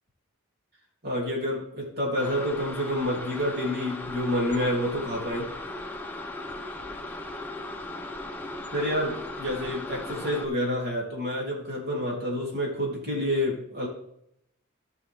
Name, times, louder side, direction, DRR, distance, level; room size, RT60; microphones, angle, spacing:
voice 1, 1.0-5.5 8.7-13.9, equal, 50° right, -3 dB, 3.4 m, -28 dB
sound 1, 2.2-10.5, left 2 dB, 10° left, 1.0 m, -37 dB
15.5 x 6.2 x 3.6 m, 0.74 s
head